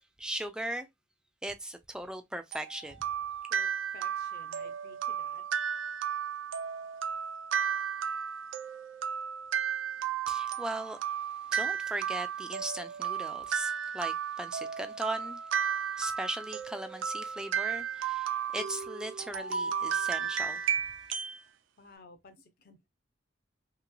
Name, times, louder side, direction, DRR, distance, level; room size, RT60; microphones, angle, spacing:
voice 1, 0.2-0.9 1.4-3.0 10.3-11.0 11.5-15.4 16.0-20.6, right 1 dB, 5° right, 0.3 m, -38 dB
sound 1, 2.5-21.4, right 8 dB, 80° right, 0.5 m, -34 dB
voice 2, 3.5-5.4 21.8-22.9, left 2 dB, 50° left, 0.7 m, -54 dB
3.0 x 2.9 x 2.3 m
head